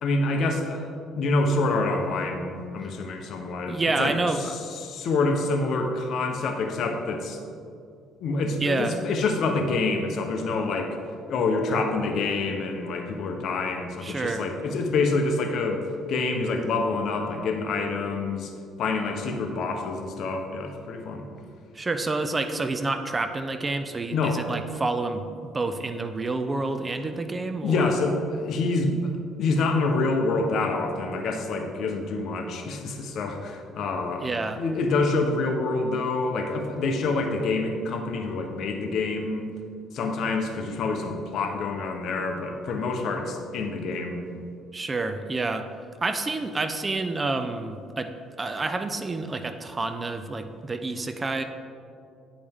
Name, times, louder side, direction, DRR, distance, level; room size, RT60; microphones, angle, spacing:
voice 1, 0.0-0.9 1.2-4.1 4.4-7.4 8.2-11.0 11.3-18.5 18.8-21.3 24.1-24.4 27.6-29.1 29.4-34.3 34.6-39.5 39.9-44.3, left 3 dB, 60° left, 4 dB, 0.9 m, -27 dB
voice 2, 3.7-4.5 8.6-9.0 14.0-14.5 21.7-27.9 34.2-34.6 44.7-45.7 46.0-48.1 48.4-51.4, right 3 dB, 25° right, 8 dB, 0.5 m, -28 dB
9.6 x 5.1 x 3.6 m, 2.4 s
cardioid pair, 95°, 0 cm